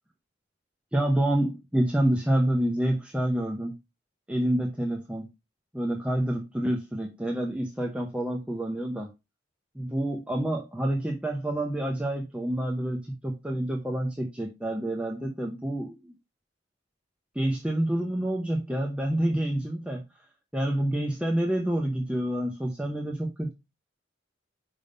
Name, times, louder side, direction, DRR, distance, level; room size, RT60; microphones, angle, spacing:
voice 1, 0.9-3.7 4.3-5.3 5.7-9.1 9.7-16.1 17.3-20.0 20.5-23.5, right 1 dB, 5° right, 0.8 m, -28 dB
5.4 x 3.6 x 5.2 m
head